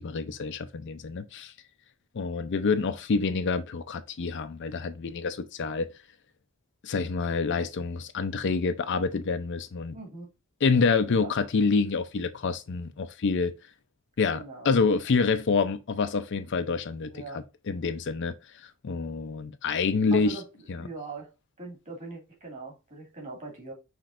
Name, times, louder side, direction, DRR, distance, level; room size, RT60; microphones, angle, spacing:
voice 1, 0.0-1.5 2.1-5.9 6.8-10.0 10.6-13.5 14.2-17.2 17.7-18.3 18.8-20.4 20.7-20.8, left 4 dB, 55° left, 0.5 m, -27 dB
voice 2, 9.9-10.3 11.1-11.3 14.3-14.7 17.1-17.4 20.1-20.5 20.8-21.3 21.6-23.7, right 3 dB, 35° right, 2.1 m, -41 dB
5.9 x 3.2 x 2.4 m
head